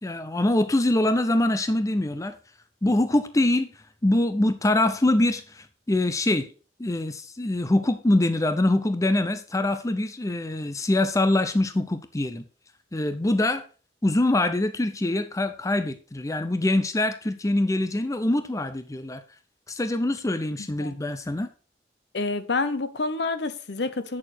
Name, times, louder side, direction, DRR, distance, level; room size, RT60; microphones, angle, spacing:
voice 1, 0.0-2.3 2.8-3.7 4.0-6.5 6.8-12.4 12.9-13.6 14.0-19.2 19.7-21.5, left 1 dB, 20° left, 0.6 m, -24 dB
voice 2, 20.6-21.0 22.1-24.2, left 3 dB, 65° left, 0.8 m, -28 dB
8.6 x 6.6 x 4.3 m
head